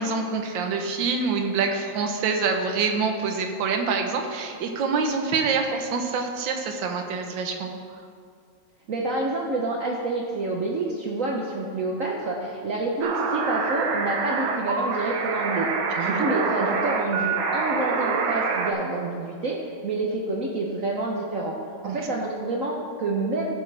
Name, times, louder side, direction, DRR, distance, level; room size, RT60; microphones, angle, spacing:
voice 1, 0.0-8.0 15.9-16.2 21.8-22.1, right 4 dB, 70° right, 4 dB, 1.6 m, -26 dB
voice 2, 8.9-15.7 16.0-21.6 21.8-23.5, right 2 dB, 55° right, -2 dB, 1.0 m, -28 dB
sound 1, 13.0-18.7, right 4 dB, 85° right, 1.7 m, -26 dB
15.0 x 7.0 x 3.4 m, 2.1 s
omnidirectional pair, 2.2 m